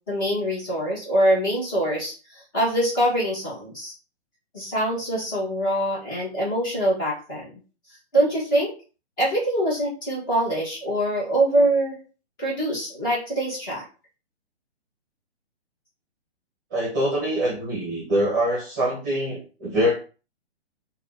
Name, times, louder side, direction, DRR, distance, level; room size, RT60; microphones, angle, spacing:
voice 1, 0.1-2.1 2.5-3.9 4.5-7.5 8.1-8.7 9.2-12.0 12.4-13.8, right 1 dB, 20° left, -5 dB, 1.2 m, -24 dB
voice 2, 16.7-19.9, equal, 15° right, -4 dB, 0.9 m, -24 dB
3.7 x 2.3 x 3.5 m, 0.35 s
hypercardioid pair, 175°, 33 cm